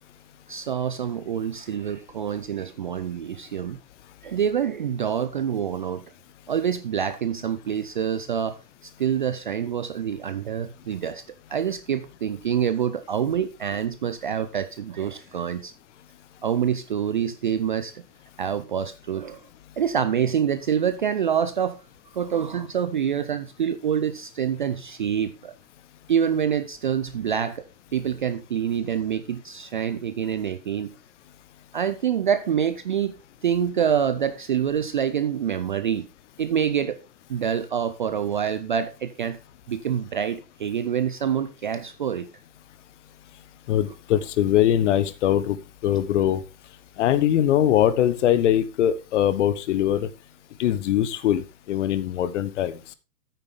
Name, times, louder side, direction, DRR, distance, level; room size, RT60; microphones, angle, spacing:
voice 1, 0.5-3.8 4.2-6.0 6.5-8.6 9.0-11.2 11.5-15.7 16.4-17.9 18.4-19.4 19.8-21.8 22.1-25.5 26.1-27.6 27.9-30.9 31.7-33.1 33.4-36.1 36.4-37.0 37.3-39.4 39.7-42.3, right 8 dB, 30° right, 0.4 m, -26 dB
voice 2, 43.7-46.4 47.0-50.1 50.6-52.8, left 11 dB, 45° left, 1.2 m, -22 dB
9.8 x 9.1 x 3.7 m
hypercardioid pair, 130°, 50 cm